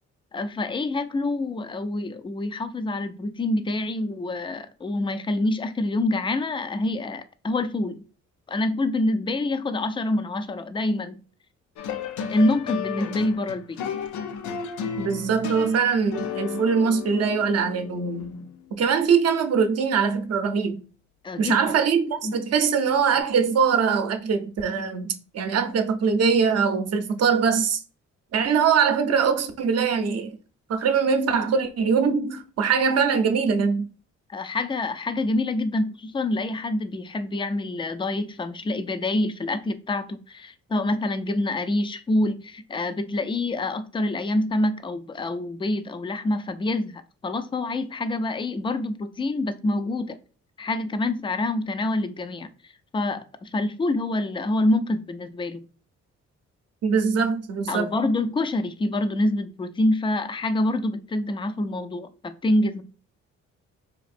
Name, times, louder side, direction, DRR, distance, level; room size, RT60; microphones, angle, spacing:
voice 1, 0.3-8.0 8.5-11.2 12.3-13.8 21.2-21.6 22.2-22.4 34.3-50.2 50.6-52.5 52.9-55.6 57.7-62.8, left 2 dB, 15° left, 0.3 m, -26 dB
sound 1, 11.8-18.5 23.1-23.2, left 7 dB, 75° left, 0.5 m, -33 dB
voice 2, 15.0-18.5 18.8-20.8 21.4-27.8 28.3-30.3 30.7-33.9 56.8-57.9, right 6 dB, 55° right, 0.6 m, -22 dB
4.0 x 2.5 x 2.5 m
cardioid pair, 90°, 30 cm